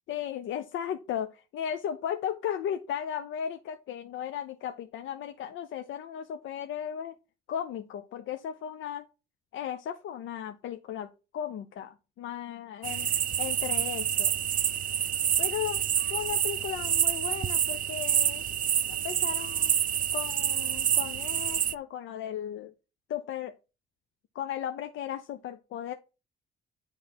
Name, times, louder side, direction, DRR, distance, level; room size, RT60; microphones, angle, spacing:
voice 1, 0.1-7.1 7.5-9.1 9.5-13.1 13.4-14.3 15.4-15.8 16.1-18.4 18.9-19.8 20.1-22.7 23.1-23.5 24.3-25.9, left 9 dB, 80° left, 0.7 m, -36 dB
sound 1, 12.8-21.7, right 9 dB, 45° right, 0.5 m, -28 dB
9.5 x 3.3 x 5.9 m
cardioid pair, 90°, 20 cm